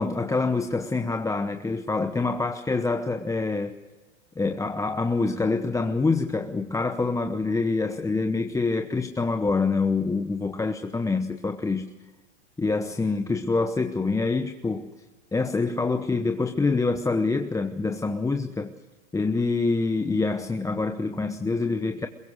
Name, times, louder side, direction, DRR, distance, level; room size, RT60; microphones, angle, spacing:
voice 1, 0.0-3.7 4.4-11.9 12.6-14.9 15.3-18.7 19.1-22.1, left 3 dB, 10° left, 7 dB, 1.0 m, -26 dB
22.5 x 22.0 x 6.6 m, 1.2 s
hypercardioid pair, 100°, 36 cm